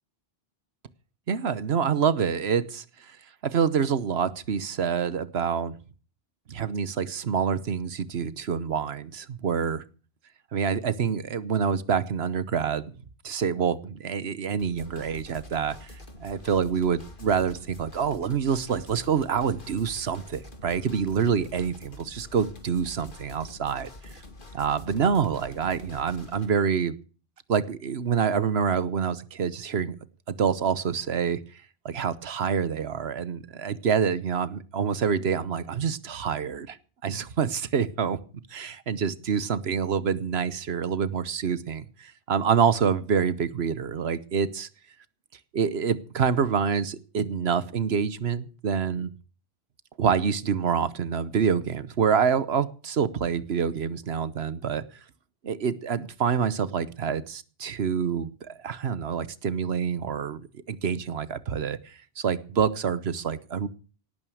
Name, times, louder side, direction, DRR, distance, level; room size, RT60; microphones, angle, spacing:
voice 1, 1.3-3.2 3.4-5.8 6.5-9.8 10.5-12.9 13.2-15.9 16.2-23.9 24.5-27.0 27.5-29.9 30.3-31.4 31.8-36.8 37.0-38.2 38.5-44.7 45.5-49.1 50.0-54.8 55.4-60.4 60.7-63.7, right 6 dB, 80° right, 16 dB, 1.2 m, -27 dB
sound 1, 14.6-26.5, left 2 dB, 55° left, 2.4 m, -46 dB
18.0 x 9.1 x 6.3 m, 0.38 s
omnidirectional pair, 1.1 m